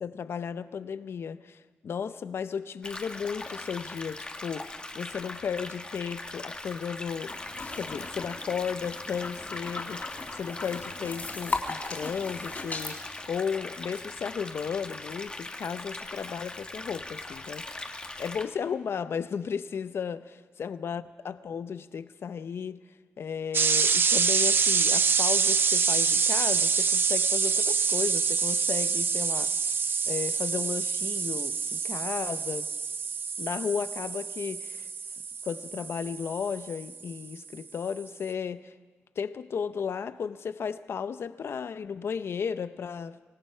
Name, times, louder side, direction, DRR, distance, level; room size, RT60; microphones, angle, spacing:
voice 1, 0.0-7.4 7.7-17.8 18.2-22.8 23.2-29.5 30.1-32.7 33.4-34.9 35.4-38.7 39.2-43.2, left 6 dB, 65° left, 0.7 m, -34 dB
sound 1, 2.8-18.4, left 2 dB, 20° left, 1.6 m, -40 dB
sound 2, 7.2-12.9, left 3 dB, 40° left, 3.5 m, -38 dB
sound 3, 23.5-37.1, right 5 dB, 55° right, 0.8 m, -26 dB
25.0 x 19.0 x 5.7 m
wide cardioid pair, 110°, 4 cm